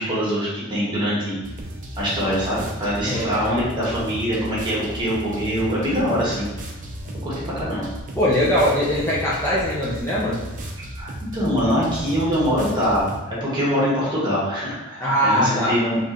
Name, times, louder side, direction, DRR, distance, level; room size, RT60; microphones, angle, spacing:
voice 1, 0.0-1.4 2.0-6.5 7.2-7.8 10.8-16.0, equal, 20° right, -7 dB, 1.3 m, -23 dB
sound 1, 1.4-13.2, right 1 dB, 40° right, 0.5 m, -35 dB
voice 2, 8.1-10.5 15.0-15.8, equal, 10° left, -8 dB, 0.5 m, -21 dB
4.2 x 3.0 x 2.9 m, 1.1 s
head